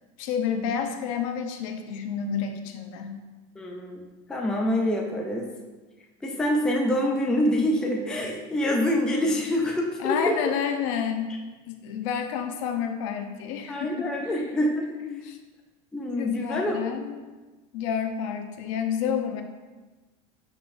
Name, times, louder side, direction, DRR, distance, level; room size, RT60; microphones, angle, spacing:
voice 1, 0.2-3.2 10.0-11.4 11.7-14.6 15.0-15.4 16.2-17.3 17.7-19.4, left 7 dB, 65° left, 6 dB, 0.7 m, -30 dB
voice 2, 3.6-5.5 6.2-10.2 13.7-14.9 15.9-16.8, left 1 dB, 5° left, 0 dB, 0.4 m, -26 dB
10.5 x 3.8 x 2.6 m, 1.2 s
cardioid pair, 175°, 18 cm